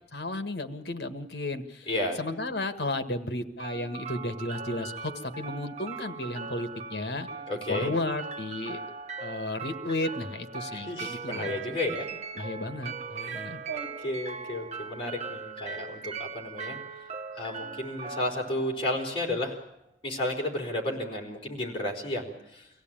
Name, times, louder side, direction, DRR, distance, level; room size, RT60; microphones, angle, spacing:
voice 1, 0.1-1.9 2.2-7.3 7.7-8.8 9.2-11.6 12.4-13.6, left 2 dB, 65° left, 9 dB, 1.6 m, -33 dB
voice 2, 1.9-2.2 7.5-7.9 10.7-12.1 13.2-16.8 17.3-19.6 20.0-22.7, left 1 dB, 30° left, -1 dB, 4.3 m, -32 dB
sound 1, 3.6-19.6, right 5 dB, 40° right, 1.3 m, -40 dB
24.5 x 16.5 x 9.0 m, 0.84 s
head